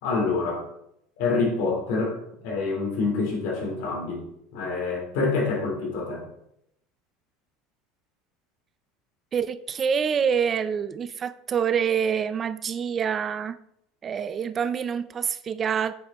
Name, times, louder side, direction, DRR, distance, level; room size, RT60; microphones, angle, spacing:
voice 1, 0.0-0.7 1.2-2.2 2.4-4.2 4.5-6.2, left 3 dB, 75° left, 0 dB, 3.9 m, -26 dB
voice 2, 9.3-13.6 14.0-15.9, right 7 dB, 25° right, 14 dB, 0.4 m, -26 dB
8.5 x 7.9 x 4.2 m, 0.77 s
cardioid pair, 160°, 0 cm